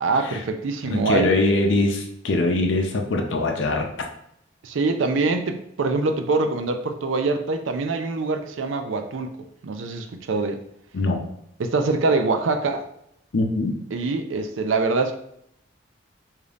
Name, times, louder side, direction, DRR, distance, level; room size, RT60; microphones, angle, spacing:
voice 1, 0.0-1.4 4.6-9.4 9.6-10.6 11.6-12.8 13.9-15.2, right 3 dB, 90° right, 6 dB, 0.5 m, -24 dB
voice 2, 0.9-3.9 10.9-11.2 13.3-13.8, left 2 dB, 80° left, 3 dB, 0.6 m, -22 dB
5.0 x 2.7 x 2.5 m, 0.74 s
head